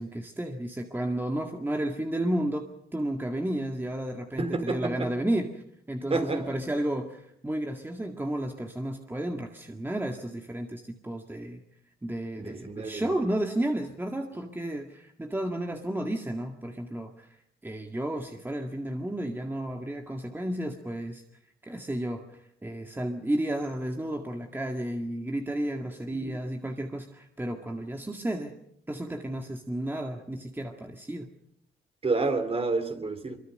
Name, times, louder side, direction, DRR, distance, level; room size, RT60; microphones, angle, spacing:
voice 1, 0.0-11.6 12.0-17.3 17.6-21.2 21.6-28.5 28.9-31.3, right 1 dB, 10° right, 3 dB, 2.0 m, -32 dB
voice 2, 4.4-5.1 6.1-6.5 12.4-13.0 32.0-33.4, right 3 dB, 30° right, 9 dB, 3.1 m, -29 dB
24.0 x 23.0 x 6.6 m, 0.75 s
cardioid pair, 90°, 20 cm